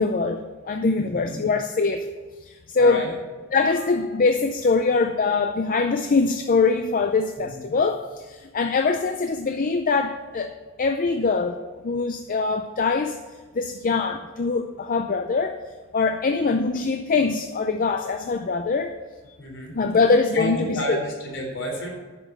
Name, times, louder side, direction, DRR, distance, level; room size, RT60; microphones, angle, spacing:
voice 1, 0.0-2.1 2.4-3.1 3.5-10.5 10.8-13.2 13.5-15.6 15.9-18.9 19.7-21.0, left 4 dB, 40° left, 7 dB, 0.5 m, -23 dB
voice 2, 1.0-1.4 2.7-3.1 7.4-7.7 19.4-19.7 20.3-21.9, left 1 dB, 60° left, -2 dB, 3.7 m, -30 dB
9.2 x 6.1 x 8.4 m, 1.3 s
head